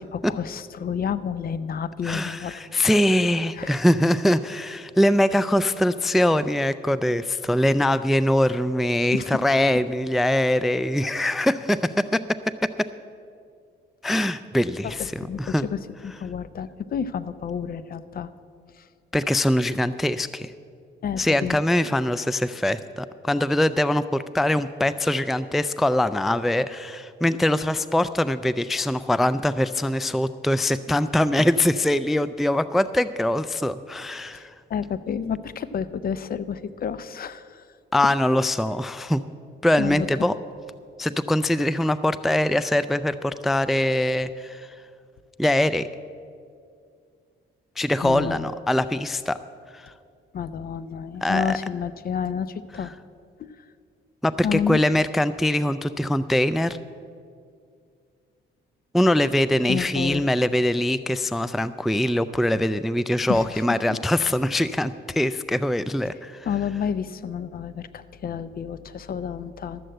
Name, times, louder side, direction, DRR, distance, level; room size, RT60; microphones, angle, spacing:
voice 1, 0.1-2.9 3.6-3.8 9.0-9.4 15.0-18.3 18.8-18.9 21.0-21.6 34.3-37.7 39.8-40.1 48.0-48.5 50.3-52.9 53.4-53.5 54.4-54.8 59.7-60.3 63.3-64.0 66.4-69.8, left 7 dB, 50° left, 14 dB, 0.6 m, -30 dB
voice 2, 2.0-12.2 14.0-15.1 15.4-15.6 19.1-20.5 21.2-34.5 37.9-39.2 39.6-40.3 41.0-44.7 45.4-45.9 47.8-49.4 49.7-49.9 51.2-51.6 54.2-56.8 58.9-66.5, left 1 dB, ahead, 14 dB, 0.3 m, -23 dB
12.5 x 7.6 x 7.9 m, 2.3 s
cardioid pair, 90°, 20 cm